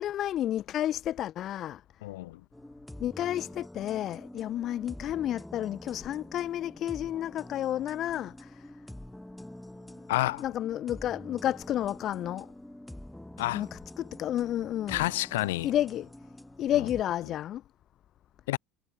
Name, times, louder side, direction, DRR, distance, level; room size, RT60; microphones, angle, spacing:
voice 1, 0.0-1.8 3.0-8.6 10.4-12.5 13.5-15.0 15.6-16.1 16.6-17.6, left 12 dB, 45° left, 2.9 m, -31 dB
voice 2, 2.0-2.4 10.1-10.4 13.4-13.6 14.9-15.7 16.7-16.9 18.5-18.6, left 18 dB, 70° left, 0.7 m, -29 dB
sound 1, 2.5-17.0, left 1 dB, 5° left, 4.8 m, -46 dB
figure-of-eight pair, 65°, 0 cm